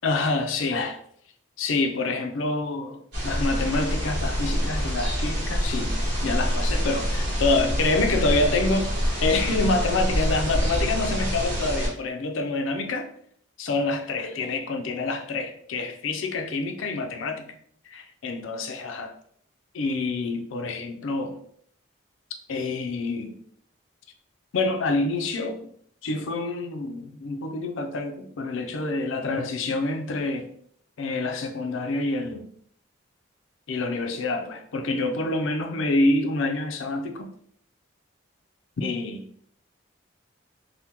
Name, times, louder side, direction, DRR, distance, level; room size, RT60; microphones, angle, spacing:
voice 1, 0.0-1.0 1.6-8.9 9.2-13.1 13.6-17.6 17.9-19.1 19.7-21.4 22.5-23.4 24.5-25.7 26.0-30.5 31.0-32.5 33.7-37.3 38.8-39.2, left 2 dB, 85° left, 0.4 m, -27 dB
sound 1, 3.1-11.9, equal, 60° right, 1.3 m, -26 dB
3.4 x 2.1 x 2.8 m
head